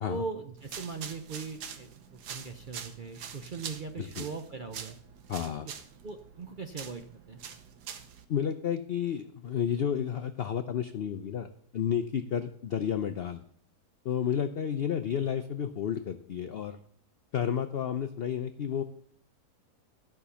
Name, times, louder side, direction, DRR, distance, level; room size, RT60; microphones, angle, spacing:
voice 1, 0.1-5.0 5.6-5.7 6.0-7.4, right 4 dB, 50° right, 6 dB, 0.6 m, -40 dB
sound 1, 0.6-8.2, right 7 dB, 80° right, 1.5 m, -45 dB
voice 2, 5.3-5.7 8.3-13.4 14.0-16.8 17.3-18.8, left 8 dB, 80° left, 10 dB, 0.5 m, -31 dB
13.0 x 6.0 x 6.9 m, 0.63 s
omnidirectional pair, 1.7 m